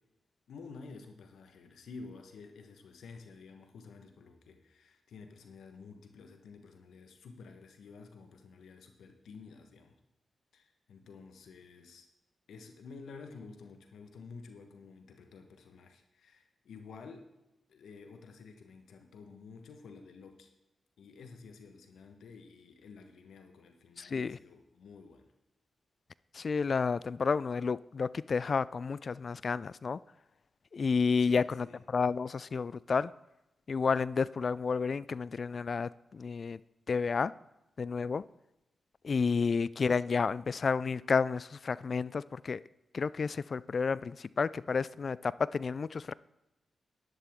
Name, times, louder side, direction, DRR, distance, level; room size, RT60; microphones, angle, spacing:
voice 1, 0.5-10.0 10.5-12.1 12.5-17.3 17.7-20.5 21.0-25.3 31.2-31.8 39.2-39.6, left 4 dB, 80° left, 1.2 m, -51 dB
voice 2, 24.0-24.4 26.3-30.0 30.7-33.1 33.7-36.6 36.9-37.3 37.8-38.2 39.0-42.6 42.9-46.1, left 5 dB, 60° left, 0.3 m, -31 dB
11.0 x 11.0 x 3.6 m
supercardioid pair, 40°, 0 cm